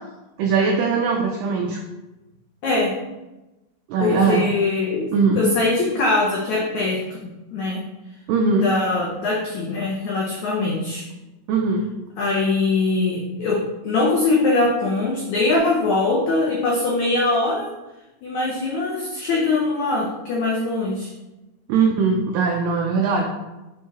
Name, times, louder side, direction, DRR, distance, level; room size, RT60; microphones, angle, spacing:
voice 1, 0.4-1.8 3.9-4.4 5.1-5.4 8.3-8.7 11.5-11.9 21.7-23.2, right 4 dB, 85° right, 1 dB, 1.9 m, -20 dB
voice 2, 4.0-5.1 5.3-7.2 7.5-7.8 8.5-11.0 12.2-13.6 13.8-17.7 18.2-21.1, left 3 dB, 90° left, -3 dB, 1.6 m, -22 dB
6.7 x 3.8 x 4.1 m, 1.0 s
omnidirectional pair, 4.5 m